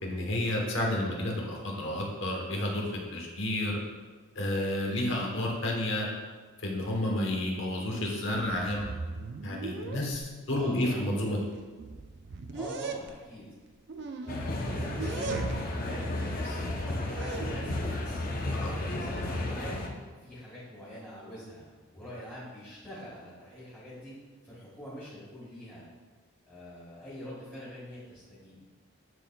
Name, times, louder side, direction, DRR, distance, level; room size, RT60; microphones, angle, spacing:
voice 1, 0.0-2.9 3.1-3.8 4.3-6.1 6.6-8.9 9.4-11.5 18.5-18.7, left 1 dB, 60° left, -1 dB, 1.2 m, -30 dB
sound 1, 7.9-8.1 8.3-10.2 11.0-11.1 11.5-13.1 13.9-15.8 16.2-17.9, right 3 dB, 50° right, 0.4 m, -39 dB
voice 2, 10.5-11.2 12.5-13.5 14.2-18.2 18.6-19.9 20.2-21.6 21.9-24.1 24.4-25.8 26.5-28.6, equal, 10° left, -10 dB, 1.6 m, -44 dB
sound 2, 14.3-19.9, left 2 dB, 40° left, 0.6 m, -33 dB
10.5 x 3.9 x 2.3 m, 1.4 s
head